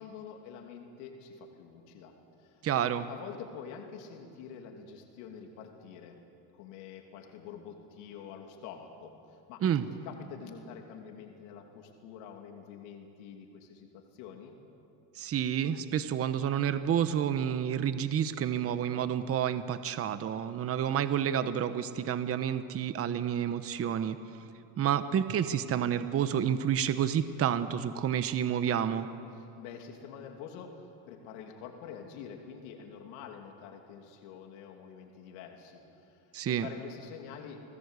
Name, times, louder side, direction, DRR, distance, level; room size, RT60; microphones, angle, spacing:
voice 1, 0.0-2.1 2.4-2.6 3.1-6.2 6.5-9.6 10.0-14.5 29.3-37.6, left 7 dB, 80° left, 3 dB, 2.9 m, -47 dB
voice 2, 2.6-3.1 9.6-9.9 15.2-24.2 24.8-29.1 36.3-36.7, right 9 dB, 30° right, 11 dB, 1.0 m, -29 dB
27.5 x 19.5 x 8.2 m, 2.6 s
cardioid pair, 125°, 44 cm